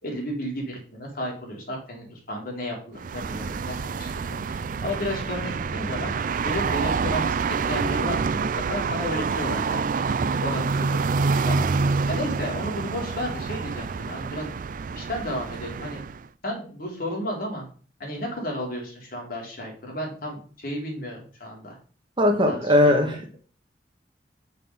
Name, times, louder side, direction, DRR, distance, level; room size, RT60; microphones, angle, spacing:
voice 1, 0.0-6.2 6.4-10.0 10.4-11.7 12.1-14.5 14.9-16.0 16.4-17.7 18.0-21.8 22.4-22.7, equal, 55° left, 0 dB, 3.6 m, -33 dB
sound 1, 3.0-16.3, right 4 dB, 50° right, 0.4 m, -27 dB
voice 2, 22.2-23.4, left 1 dB, 30° right, 4 dB, 1.5 m, -20 dB
6.6 x 5.7 x 6.9 m, 0.42 s
head